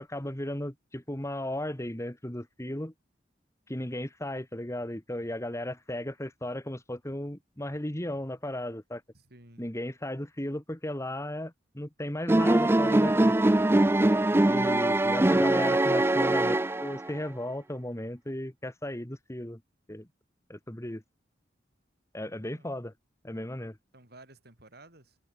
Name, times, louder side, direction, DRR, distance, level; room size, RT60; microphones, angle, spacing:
voice 1, 0.0-2.9 3.7-9.0 9.6-13.4 14.5-19.6 19.9-20.1 20.5-21.0 22.1-22.9 23.2-23.8, left 1 dB, 15° left, 2.1 m, -35 dB
voice 2, 9.1-9.7 22.2-22.7 23.9-25.2, right 2 dB, 60° right, 8.0 m, -54 dB
sound 1, 12.3-17.2, right 1 dB, 15° right, 0.4 m, -23 dB
head